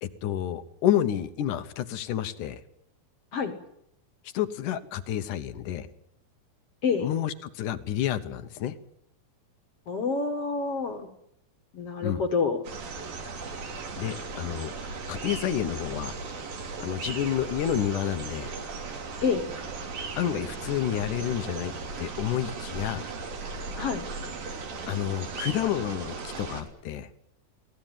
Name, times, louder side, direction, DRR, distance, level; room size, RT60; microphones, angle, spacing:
voice 1, 0.0-2.6 4.3-5.9 7.0-8.8 12.0-12.2 14.0-14.7 15.1-16.1 16.8-18.5 20.2-21.7 22.0-23.1 24.9-27.1, left 11 dB, 65° left, 12 dB, 2.2 m, -29 dB
voice 2, 9.9-11.1 11.7-12.6 19.2-19.5 23.8-24.0, left 5 dB, 50° left, 7 dB, 2.2 m, -27 dB
sound 1, 12.6-26.6, right 4 dB, 65° right, 4.7 m, -37 dB
23.0 x 18.0 x 9.1 m, 0.77 s
omnidirectional pair, 4.5 m